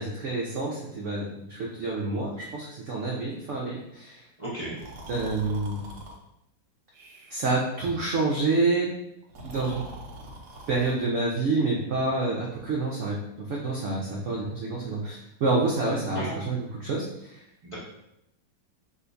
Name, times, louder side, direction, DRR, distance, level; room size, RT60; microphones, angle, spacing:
voice 1, 0.0-4.2 5.1-5.8 7.3-8.9 9.4-9.8 10.7-17.4, right 3 dB, 90° right, -3 dB, 0.6 m, -28 dB
voice 2, 4.4-4.8 16.1-16.3 17.6-17.7, right 1 dB, 40° right, -8 dB, 0.4 m, -34 dB
Breathing, 4.7-6.2 6.9-7.6 9.2-11.0, right 1 dB, 60° right, 1.0 m, -42 dB
5.0 x 2.4 x 2.5 m, 0.84 s
omnidirectional pair, 2.0 m